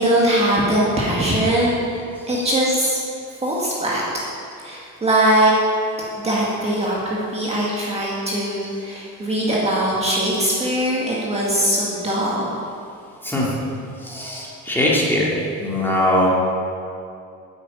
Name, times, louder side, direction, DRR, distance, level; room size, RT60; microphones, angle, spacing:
voice 1, 0.0-1.8 2.3-3.0 3.4-4.0 4.6-5.5 6.2-12.6 14.7-14.8, right 1 dB, 20° right, -5 dB, 1.9 m, -21 dB
voice 2, 14.0-15.3 15.6-16.3, left 1 dB, 5° left, -5 dB, 2.5 m, -21 dB
9.8 x 9.6 x 8.7 m, 2.5 s
cardioid pair, 170°, 31 cm